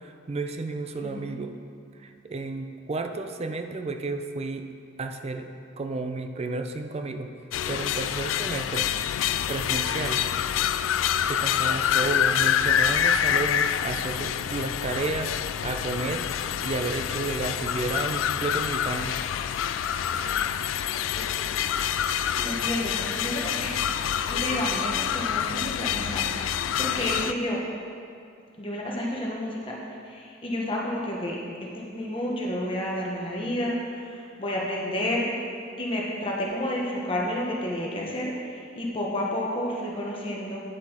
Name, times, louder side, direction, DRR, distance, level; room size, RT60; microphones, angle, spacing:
voice 1, 0.0-1.6 2.0-4.7 5.0-5.5 5.8-7.3 7.7-8.9 9.5-10.2 11.3-19.2, right 3 dB, 35° right, 7 dB, 0.5 m, -32 dB
voice 2, 1.0-1.3 21.1-21.6 22.3-27.6 28.6-31.4 31.7-35.3 35.8-40.6, left 1 dB, 30° left, -3 dB, 1.0 m, -31 dB
sound 1, 7.5-27.3, left 9 dB, 80° left, 0.3 m, -27 dB
9.3 x 6.0 x 4.3 m, 2.3 s
head